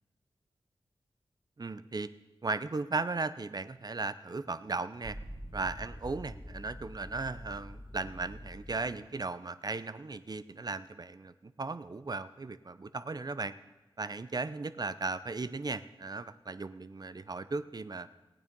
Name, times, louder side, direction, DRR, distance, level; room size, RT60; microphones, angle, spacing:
voice 1, 1.6-2.1 2.4-5.2 5.5-13.5 14.0-18.1, right 3 dB, 45° right, 13 dB, 0.7 m, -36 dB
sound 1, 5.0-9.1, equal, 5° right, 2.4 m, -46 dB
16.0 x 9.2 x 5.4 m, 1.1 s
cardioid pair, 40°, 9 cm